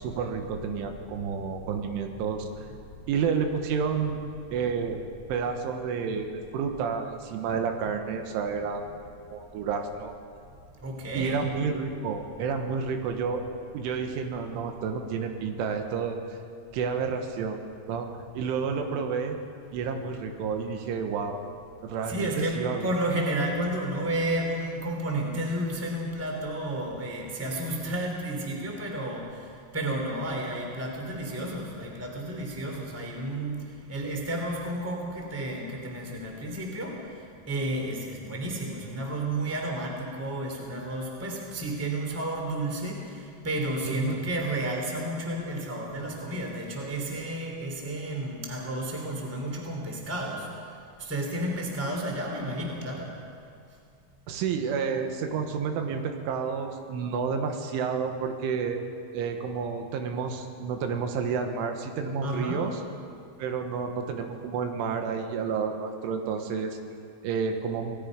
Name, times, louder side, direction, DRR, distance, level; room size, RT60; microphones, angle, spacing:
voice 1, 0.0-2.5 3.1-4.2 4.5-5.0 5.3-8.8 9.3-10.1 11.1-13.4 13.7-16.2 16.7-17.6 17.9-18.1 18.4-19.4 19.7-21.4 21.8-22.9 43.9-44.2 54.3-58.8 59.1-62.8 63.4-66.8 67.2-68.0, right 6 dB, 85° right, 5 dB, 3.9 m, -30 dB
voice 2, 10.8-11.4 22.1-53.1 62.2-62.7, right 1 dB, 5° right, 0 dB, 2.0 m, -32 dB
27.0 x 19.0 x 5.3 m, 2.4 s
omnidirectional pair, 5.4 m